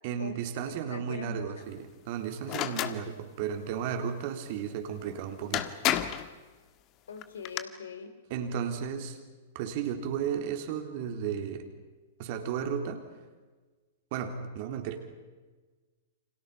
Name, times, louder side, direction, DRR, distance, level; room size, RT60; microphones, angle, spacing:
voice 1, 0.0-5.8 8.3-9.2 9.5-11.7 12.2-13.0 14.1-15.0, right 8 dB, 50° right, 5 dB, 3.8 m, -34 dB
voice 2, 0.6-1.7 7.1-8.2, left 6 dB, 75° left, 9 dB, 3.2 m, -43 dB
sound 1, 2.5-3.0 5.0-5.1 5.5-6.3 7.2-7.6, left 12 dB, 35° left, 1.7 m, -29 dB
30.0 x 26.5 x 5.8 m, 1.3 s
figure-of-eight pair, 105°, 0 cm